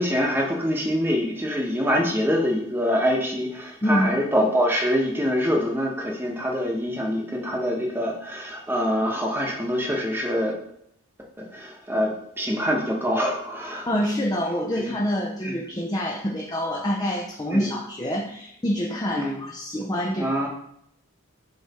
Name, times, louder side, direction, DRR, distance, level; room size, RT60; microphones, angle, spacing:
voice 1, 0.0-10.5 11.5-12.1 12.4-13.9 14.8-14.9 15.4-15.6 17.5-17.7 19.1-19.4 20.1-20.5, equal, 10° right, -1 dB, 1.0 m, -25 dB
voice 2, 13.9-20.3, equal, 20° left, -2 dB, 0.5 m, -26 dB
7.0 x 3.2 x 4.2 m, 0.73 s
head